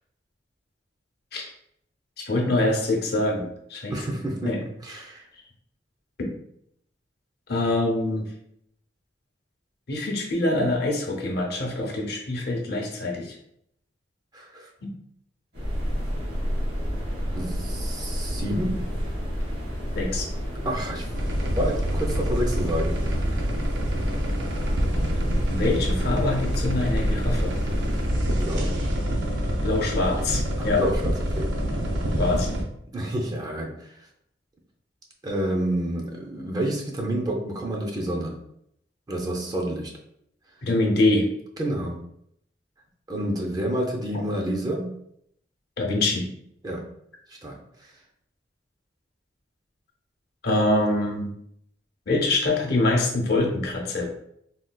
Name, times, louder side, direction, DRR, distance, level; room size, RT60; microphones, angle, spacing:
voice 1, 2.2-3.9 4.4-4.6 6.2-6.3 7.5-8.3 9.9-13.3 14.8-14.9 19.9-20.3 25.5-27.5 29.6-30.8 32.2-32.6 40.6-41.3 44.1-44.2 45.8-46.3 50.4-51.3 52.1-54.1, left 2 dB, 60° left, 1 dB, 0.6 m, -24 dB
voice 2, 3.9-5.2 14.3-14.7 17.4-18.8 20.6-21.1 21.6-23.0 23.3-23.5 28.4-28.8 30.6-31.5 32.9-34.1 35.2-38.4 39.1-39.9 41.6-42.0 43.1-44.9 46.6-46.8 47.3-47.9, right 1 dB, 20° right, 0 dB, 0.5 m, -29 dB
sound 1, 15.5-28.1, equal, 60° right, 1.2 m, -30 dB
sound 2, 21.1-32.6, equal, 75° right, 0.5 m, -26 dB
3.7 x 2.3 x 2.2 m, 0.73 s
head